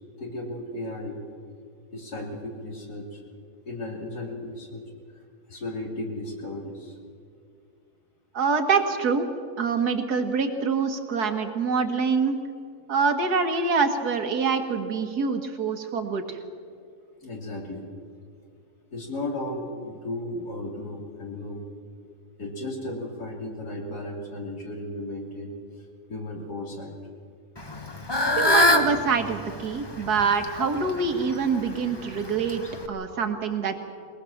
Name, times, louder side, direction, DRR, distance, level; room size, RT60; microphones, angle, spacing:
voice 1, 0.2-1.2 1.9-3.2 3.7-4.8 5.1-5.2 5.5-7.0 17.2-17.9 18.9-21.6 22.4-25.5 26.1-27.0, left 1 dB, 75° left, 1 dB, 3.5 m, -35 dB
voice 2, 8.3-9.3 9.6-12.4 12.9-16.4 28.4-33.8, right 5 dB, 75° right, 6 dB, 2.1 m, -25 dB
Fowl / Bird, 27.6-32.9, left 1 dB, 15° left, 1.2 m, -26 dB
22.5 x 19.0 x 7.2 m, 2.3 s
omnidirectional pair, 1.7 m